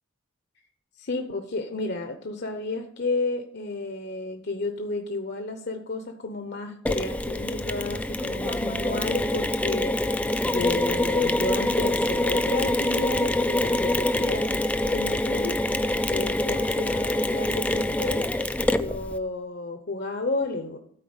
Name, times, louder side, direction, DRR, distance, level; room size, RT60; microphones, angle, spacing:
voice 1, 1.0-15.6 16.1-18.2 18.7-20.8, left 2 dB, 55° left, 5 dB, 0.9 m, -32 dB
Mechanisms, 6.9-19.2, left 1 dB, 5° left, 0.4 m, -25 dB
13.0 x 4.6 x 8.0 m, 0.64 s
head